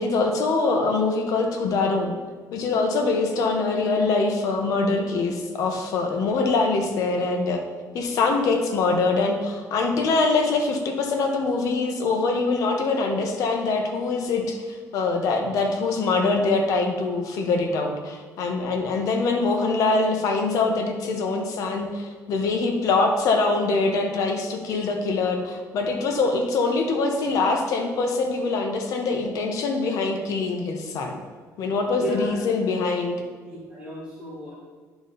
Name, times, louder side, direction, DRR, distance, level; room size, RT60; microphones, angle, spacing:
voice 1, 0.0-2.1 2.5-7.6 7.9-14.6 14.9-31.2 31.6-33.2, left 3 dB, 65° left, 3 dB, 1.1 m, -23 dB
voice 2, 32.0-32.5 33.5-34.5, right 2 dB, 15° right, -8 dB, 1.8 m, -35 dB
10.5 x 4.1 x 4.0 m, 1.5 s
cardioid pair, 165°, 6 cm